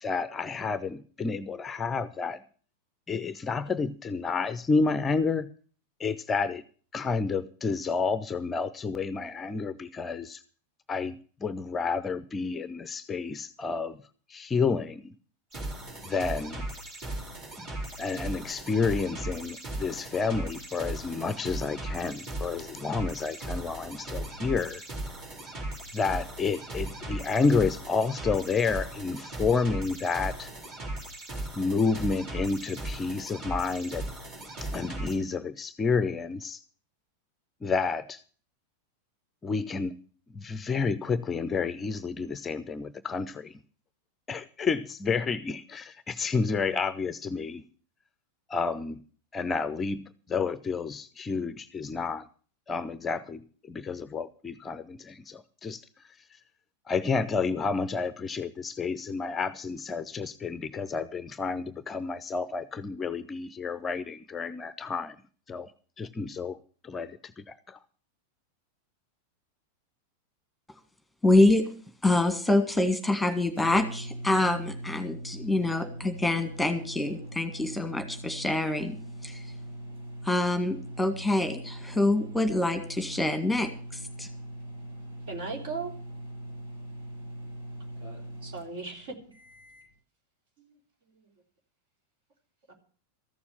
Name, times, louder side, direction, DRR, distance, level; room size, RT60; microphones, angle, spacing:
voice 1, 0.0-2.4 3.1-5.5 6.0-6.6 6.9-10.4 10.9-14.0 14.3-15.1 16.1-16.7 17.6-17.7 18.0-24.8 25.9-30.5 31.6-34.0 34.6-36.6 37.6-38.2 39.4-40.0 40.3-43.6 44.3-47.6 48.5-49.0 49.3-52.3 52.7-56.4 56.9-65.2 65.5-65.7 66.0-66.6 66.8-67.8, left 4 dB, 20° left, 15 dB, 0.6 m, -30 dB
sound 1, 15.5-35.2, right 1 dB, 30° right, 4.1 m, -37 dB
voice 2, 71.2-71.7 72.0-79.0 79.2-79.4 80.2-83.7 84.2-84.3, left 2 dB, 5° left, 8 dB, 1.8 m, -25 dB
sound 2, 73.0-89.9, right 1 dB, 70° right, 7.0 m, -41 dB
voice 3, 85.3-85.9 88.4-89.2 90.6-90.7 92.7-92.8, right 4 dB, 55° right, 3 dB, 3.4 m, -37 dB
14.0 x 7.1 x 8.6 m, 0.42 s
figure-of-eight pair, 90°, 0 cm